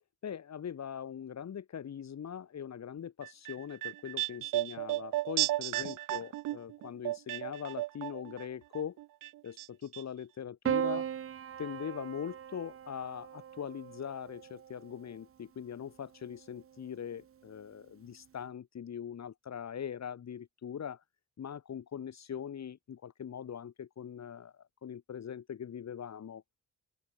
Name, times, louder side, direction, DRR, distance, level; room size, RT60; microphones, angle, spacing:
voice 1, 0.2-9.0 9.4-11.1 11.6-21.0 21.4-26.4, left 8 dB, 55° left, 2.0 m, -41 dB
sound 1, 3.2-8.5 8.7-9.7 9.9-10.0, right 16 dB, 80° right, 0.5 m, -34 dB
Piano, 10.6-15.1 16.3-17.0, right 9 dB, 45° right, 0.7 m, -38 dB
open air
cardioid pair, 95°, 32 cm